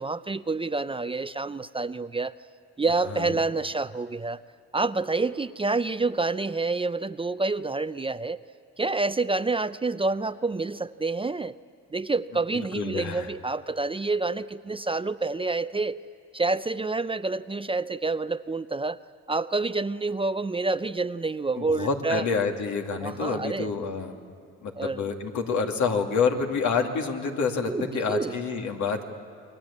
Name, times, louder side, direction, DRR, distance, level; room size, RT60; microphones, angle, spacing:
voice 1, 0.0-2.3 2.8-4.4 4.7-8.4 8.8-11.6 11.9-16.0 16.3-19.0 19.3-22.2 23.0-23.7 24.8-25.0 27.7-28.4, right 3 dB, 20° right, 12 dB, 0.5 m, -28 dB
voice 2, 12.5-13.3 21.6-24.2 24.6-29.0, left 5 dB, 75° left, 2 dB, 2.7 m, -28 dB
29.0 x 22.5 x 8.6 m, 2.6 s
cardioid pair, 90°, 30 cm